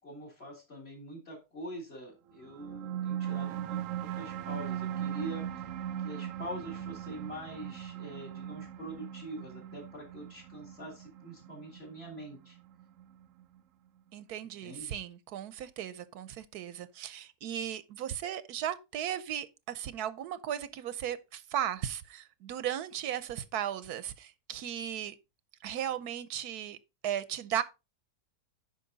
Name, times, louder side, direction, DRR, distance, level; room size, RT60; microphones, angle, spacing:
voice 1, 0.0-5.7 6.0-12.6 14.6-14.9, right 1 dB, 40° left, 3.6 m, -44 dB
sound 1, 2.5-13.4, right 10 dB, 65° right, 0.9 m, -39 dB
voice 2, 14.1-25.1 25.6-26.8 27.0-27.6, right 10 dB, 85° right, 1.2 m, -36 dB
9.3 x 5.5 x 3.9 m
omnidirectional pair, 1.6 m